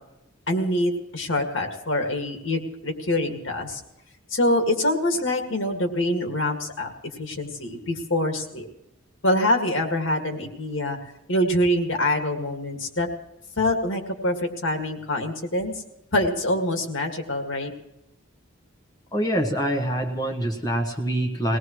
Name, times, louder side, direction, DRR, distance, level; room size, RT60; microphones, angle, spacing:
voice 1, 0.5-3.8 4.3-8.7 9.2-11.0 11.3-13.1 13.6-15.7 16.1-17.7, left 1 dB, 65° left, 4 dB, 2.2 m, -25 dB
voice 2, 19.1-21.6, right 1 dB, 20° left, 3 dB, 1.3 m, -25 dB
21.5 x 18.0 x 3.2 m, 0.90 s
head